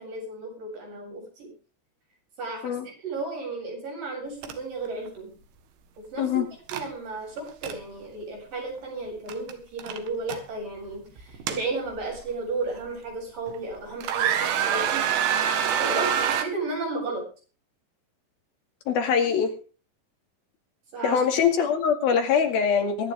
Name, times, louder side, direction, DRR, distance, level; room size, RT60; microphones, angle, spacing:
voice 1, 0.0-1.5 2.4-2.7 3.0-5.4 6.0-6.3 6.7-15.1 15.6-17.2 20.9-21.2, right 3 dB, 45° right, 0 dB, 9.4 m, -33 dB
sound 1, 4.4-4.5 4.9-5.1 6.7-6.9 7.4-7.7 9.3-9.5 9.8-10.4 11.2-12.2 12.8-12.9 13.5-13.7 14.0-16.5, right 9 dB, 85° right, 4.0 m, -26 dB
voice 2, 18.9-19.5 21.0-23.1, left 7 dB, 60° left, 5 dB, 3.9 m, -23 dB
23.5 x 10.0 x 3.6 m, 0.36 s
omnidirectional pair, 5.3 m